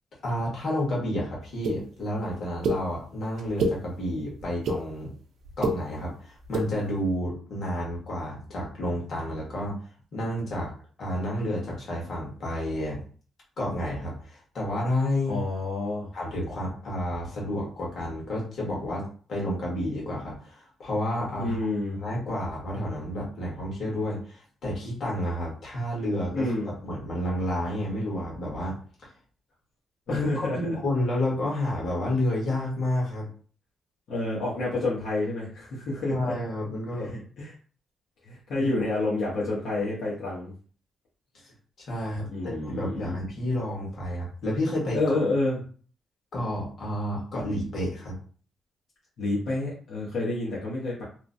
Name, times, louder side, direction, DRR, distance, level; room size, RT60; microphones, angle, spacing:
voice 1, 0.2-5.1 5.6-9.8 10.1-10.7 11.0-13.0 13.6-15.4 16.1-21.6 21.9-29.1 30.1-30.3 30.6-33.3 36.1-37.1 38.6-38.9 41.4-41.5 41.9-45.0 46.3-48.2, left 1 dB, 50° left, -4 dB, 1.4 m, -30 dB
sound 1, 1.6-1.8 2.6-2.8 3.4-3.8 4.4-4.8 5.4-5.8 6.4-6.7, right 2 dB, 75° right, 0.5 m, -25 dB
voice 2, 15.3-16.1 21.4-22.0 26.3-26.7 30.1-30.6 34.1-36.3 37.0-37.5 38.2-40.5 42.3-43.2 44.9-45.6 49.2-51.0, left 2 dB, 75° left, -7 dB, 1.0 m, -29 dB
3.0 x 2.1 x 2.5 m, 0.42 s
cardioid pair, 120°, 0 cm